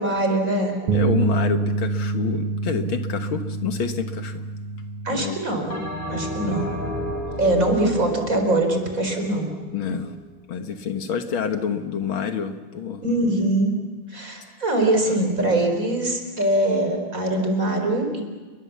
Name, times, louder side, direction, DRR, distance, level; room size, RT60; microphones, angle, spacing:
voice 1, 0.0-0.8 5.0-5.8 6.1-6.7 7.4-9.5 13.0-13.8 14.1-18.2, right 1 dB, 35° right, 4 dB, 5.0 m, -22 dB
voice 2, 0.9-4.5 5.1-5.4 6.4-6.7 9.7-10.2 10.5-13.0 15.2-15.6, left 7 dB, 70° left, 7 dB, 2.1 m, -28 dB
Bass guitar, 0.9-7.1, right 4 dB, 90° right, 2.6 m, -27 dB
Bell, 5.7-10.3, equal, 25° left, 3.3 m, -33 dB
30.0 x 22.5 x 7.3 m, 1.3 s
omnidirectional pair, 2.4 m